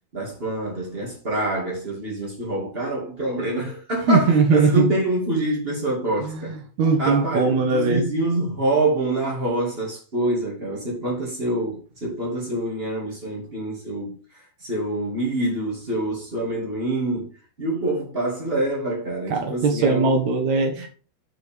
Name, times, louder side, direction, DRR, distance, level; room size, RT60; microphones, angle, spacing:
voice 1, 0.1-6.5 7.0-17.3 17.6-20.1, right 2 dB, 85° right, 0.5 m, -26 dB
voice 2, 4.1-4.9 6.2-8.0 19.3-20.9, right 4 dB, 70° right, 1.7 m, -20 dB
10.5 x 5.0 x 3.6 m
omnidirectional pair, 5.7 m